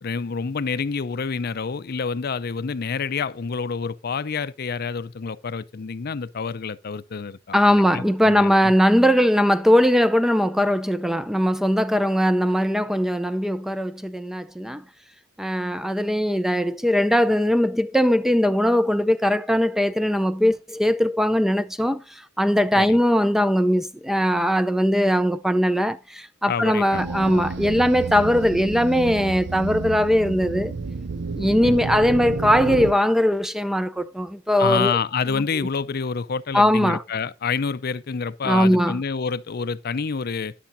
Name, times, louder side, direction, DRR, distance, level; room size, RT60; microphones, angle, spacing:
voice 1, 0.0-8.7 22.8-23.0 26.5-27.1 31.6-31.8 34.6-40.5, left 5 dB, 50° left, 0.5 m, -28 dB
voice 2, 7.5-14.8 15.4-30.7 31.4-35.0 35.3-35.4 36.5-37.0 38.4-39.0, equal, ahead, 0.5 m, -20 dB
sound 1, 26.9-32.9, right 3 dB, 60° right, 0.6 m, -30 dB
13.0 x 10.5 x 2.6 m
head